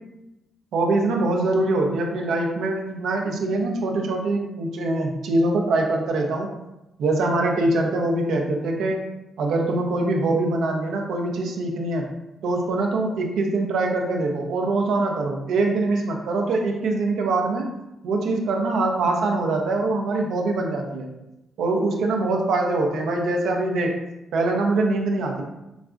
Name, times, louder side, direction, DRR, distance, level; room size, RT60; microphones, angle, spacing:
voice 1, 0.7-6.5 7.0-9.0 9.4-12.1 12.4-17.7 18.0-21.1 21.6-24.0 24.3-25.4, right 2 dB, 80° right, 1 dB, 0.5 m, -23 dB
4.0 x 2.4 x 2.4 m, 0.94 s
cardioid pair, 70°, 0 cm